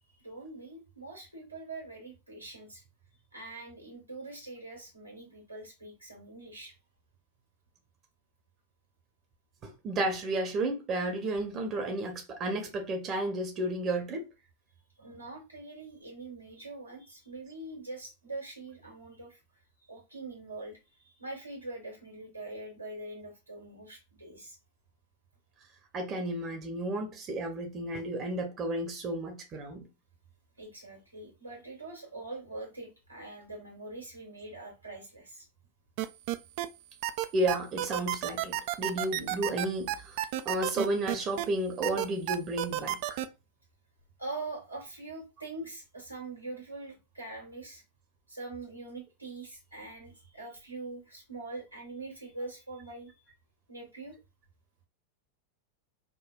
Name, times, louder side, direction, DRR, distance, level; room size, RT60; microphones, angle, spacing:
voice 1, 0.0-2.8 3.3-6.7 15.0-19.4 19.8-24.6 30.6-35.5 44.2-47.8 48.3-53.2 53.7-54.2, right 2 dB, 90° right, 1.5 m, -43 dB
voice 2, 9.6-14.3 25.9-29.8 37.3-40.2 40.4-43.2, right 1 dB, 30° right, 0.8 m, -32 dB
sound 1, 36.0-36.7 37.0-41.4 41.8-43.2, right 14 dB, 45° right, 0.3 m, -31 dB
5.1 x 2.2 x 2.2 m
figure-of-eight pair, 90°, 0 cm